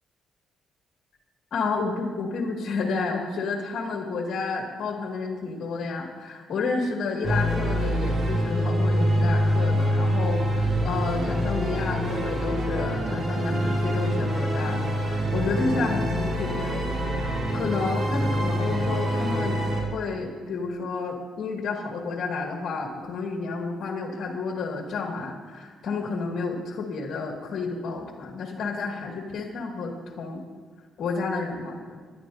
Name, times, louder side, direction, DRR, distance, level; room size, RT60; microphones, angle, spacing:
voice 1, 1.5-19.6 19.9-30.4 31.0-32.0, left 4 dB, 60° left, 0 dB, 2.1 m, -30 dB
sound 1, 7.2-19.8, equal, 45° right, 3.4 m, -25 dB
23.0 x 11.0 x 2.7 m, 1.5 s
cardioid pair, 90°, 0 cm